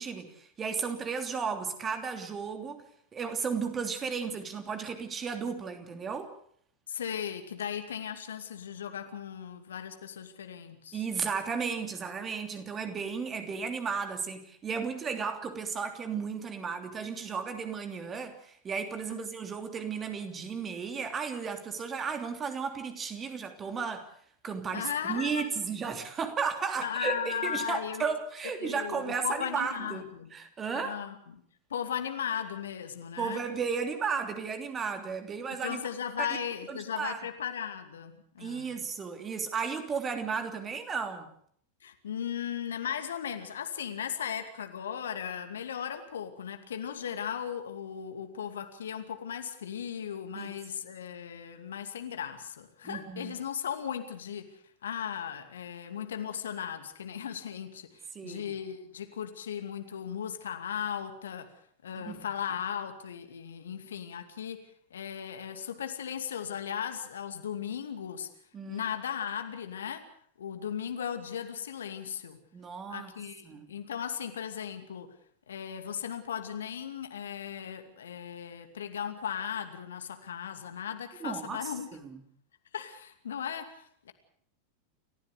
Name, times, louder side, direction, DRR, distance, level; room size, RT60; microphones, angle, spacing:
voice 1, 0.0-2.8 3.1-6.3 10.9-24.1 24.4-31.0 33.2-35.8 36.7-37.2 38.4-41.3 50.3-50.5 52.8-53.3 58.1-58.5 61.9-62.3 68.5-68.8 72.5-73.1 73.4-73.7 81.2-81.6 82.0-82.2, right 6 dB, 20° right, 6 dB, 3.0 m, -34 dB
voice 2, 6.9-11.0 19.1-19.3 24.7-25.5 26.8-28.0 28.6-30.3 30.7-31.4 31.7-33.4 35.6-38.9 41.8-61.5 61.8-64.6 64.9-68.3 68.7-70.0 70.4-72.4 72.9-75.1 75.5-81.9 82.7-84.1, left 8 dB, 65° left, 7 dB, 2.5 m, -37 dB
29.5 x 15.0 x 6.7 m, 0.62 s
figure-of-eight pair, 90°, 0 cm